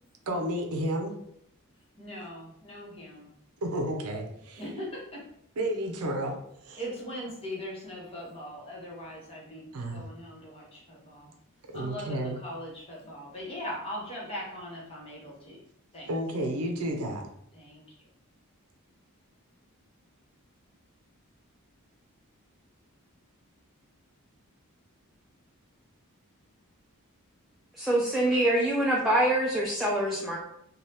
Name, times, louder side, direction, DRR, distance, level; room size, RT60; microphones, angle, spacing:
voice 1, 0.3-1.1 3.6-4.6 5.6-6.4 6.6-6.8 9.7-10.0 11.7-12.4 16.1-17.2, right 1 dB, 75° right, 3 dB, 0.5 m, -31 dB
voice 2, 2.0-3.3 4.6-5.3 6.8-11.3 11.7-15.6 15.9-16.1 17.5-17.8, equal, 25° left, -4 dB, 1.0 m, -40 dB
voice 3, 27.8-30.4, right 1 dB, ahead, -5 dB, 0.3 m, -25 dB
2.7 x 2.2 x 3.3 m, 0.73 s
head